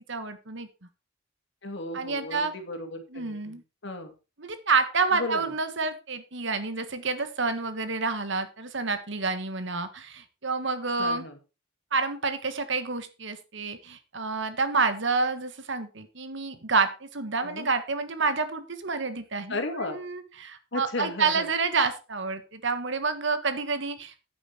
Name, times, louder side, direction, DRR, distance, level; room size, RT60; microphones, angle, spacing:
voice 1, 0.1-0.7 1.9-2.5 3.1-3.6 4.4-11.3 11.9-24.1, right 4 dB, 65° right, 10 dB, 1.6 m, -28 dB
voice 2, 1.6-4.1 5.1-5.4 11.0-11.4 17.4-17.7 19.5-20.0 20.7-21.5, left 2 dB, 60° left, 6 dB, 2.3 m, -35 dB
9.4 x 9.4 x 4.5 m, 0.31 s
head